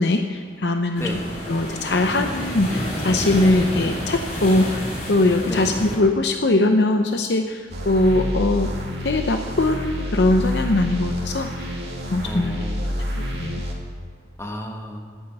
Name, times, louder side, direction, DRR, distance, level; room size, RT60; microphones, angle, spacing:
voice 1, 0.0-1.1 1.5-8.7 9.0-11.8 12.0-12.6 13.3-13.6, left 2 dB, 70° left, 5 dB, 0.7 m, -21 dB
sound 1, 0.9-6.0, equal, 45° left, 4.0 m, -29 dB
voice 2, 1.0-1.3 5.5-5.7 12.2-13.0 14.4-15.0, left 1 dB, 15° left, 2 dB, 1.3 m, -33 dB
sound 2, 7.7-13.7, equal, 65° right, 2.3 m, -28 dB
11.0 x 8.9 x 8.0 m, 2.2 s
head